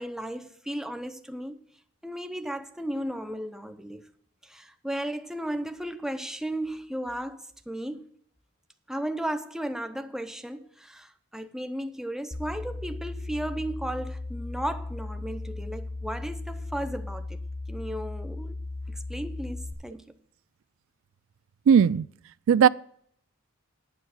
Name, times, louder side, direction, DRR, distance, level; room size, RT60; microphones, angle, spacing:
voice 1, 0.0-1.6 2.0-4.0 4.4-8.0 8.9-17.4 17.7-18.6 18.9-20.1, right 1 dB, ahead, 0.7 m, -35 dB
sound 1, 12.3-19.7, left 2 dB, 50° left, 1.4 m, -36 dB
voice 2, 21.7-22.1 22.5-22.7, right 7 dB, 65° right, 0.3 m, -17 dB
10.0 x 5.9 x 7.0 m
head